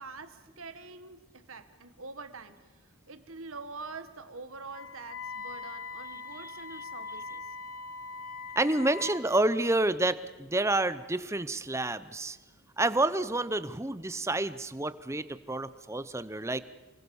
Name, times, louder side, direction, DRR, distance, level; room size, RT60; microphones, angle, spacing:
voice 1, 0.0-7.5 10.9-11.1, right 4 dB, 75° right, 10 dB, 1.7 m, -45 dB
Wind instrument woodwind instrument, 4.7-9.3, left 4 dB, 90° left, 2.5 m, -41 dB
voice 2, 8.6-12.4 12.8-16.6, right 2 dB, 15° right, 14 dB, 0.7 m, -29 dB
28.5 x 21.0 x 7.1 m, 1.2 s
head